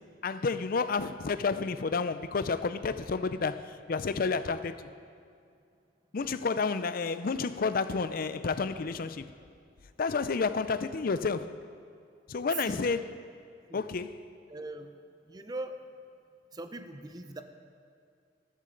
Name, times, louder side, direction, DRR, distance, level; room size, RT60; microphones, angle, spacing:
voice 1, 0.2-4.9 6.1-9.3 10.0-11.5 12.3-13.1 13.7-14.2, left 4 dB, 50° left, 0.5 m, -30 dB
voice 2, 14.5-15.0 15.3-15.8 16.5-17.4, right 1 dB, 20° right, 0.7 m, -41 dB
14.0 x 13.5 x 3.9 m
head